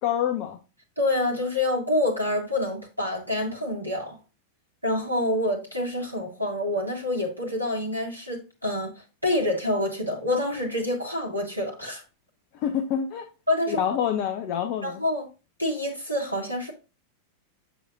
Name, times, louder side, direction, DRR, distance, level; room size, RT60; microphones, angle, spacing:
voice 1, 0.0-0.6 12.5-13.3 13.7-15.0, left 9 dB, 45° left, 0.9 m, -27 dB
voice 2, 1.0-4.2 4.8-12.0 13.5-13.8 14.8-15.3 15.6-16.7, left 1 dB, 90° right, 2.0 m, -27 dB
8.0 x 6.6 x 2.5 m
figure-of-eight pair, 90°, 0 cm